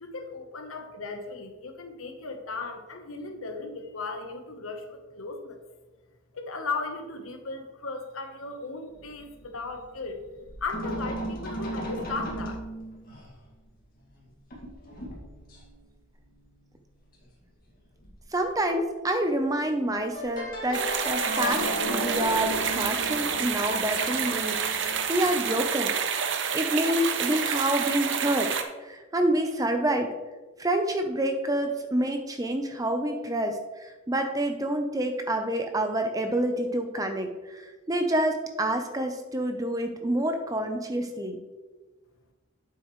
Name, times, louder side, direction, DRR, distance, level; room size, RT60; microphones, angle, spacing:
voice 1, 0.0-5.6 6.3-10.2 10.6-12.6, left 3 dB, 80° left, 5 dB, 1.0 m, -36 dB
sound 1, 8.9-10.2 10.4-13.4 14.0-14.2 14.5-15.7 17.1-17.2 17.7-17.8 18.0-18.4 20.1-25.6, equal, 40° left, 2.0 m, -35 dB
voice 2, 18.3-30.1 30.6-41.4, right 1 dB, 15° right, 5 dB, 0.6 m, -28 dB
sound 2, 20.7-28.6, right 7 dB, 60° right, 0.7 m, -28 dB
9.0 x 7.4 x 3.1 m, 1.2 s
head